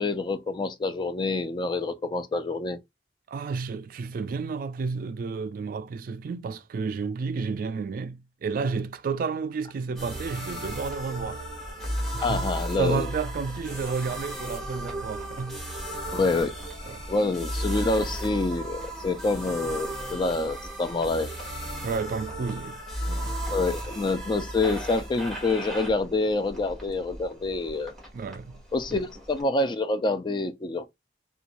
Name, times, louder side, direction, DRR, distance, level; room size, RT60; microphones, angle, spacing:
voice 1, 0.0-2.8 12.2-13.1 16.1-16.5 17.1-21.3 23.5-27.9 28.7-30.9, left 3 dB, 25° left, 0.3 m, -27 dB
voice 2, 3.3-11.4 12.1-12.5 12.8-15.8 16.9-17.1 21.8-22.8 23.1-23.4 28.1-28.6 28.9-29.0, right 5 dB, 55° right, 0.3 m, -31 dB
sound 1, 9.9-29.4, right 1 dB, ahead, 1.1 m, -35 dB
2.5 x 2.2 x 2.9 m
head